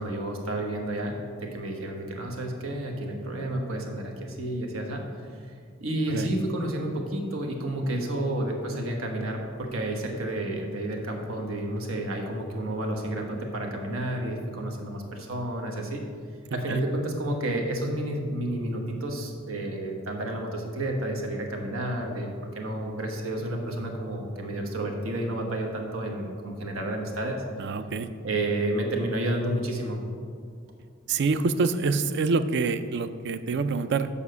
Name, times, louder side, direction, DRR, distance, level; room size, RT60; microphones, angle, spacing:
voice 1, 0.0-5.0 5.3-5.5 5.8-16.1 16.5-27.4 28.2-30.0, right 1 dB, 85° right, 1 dB, 1.3 m, -30 dB
voice 2, 27.6-28.1 31.1-34.1, right 4 dB, 60° right, 11 dB, 0.4 m, -26 dB
7.2 x 5.5 x 6.7 m, 2.2 s
head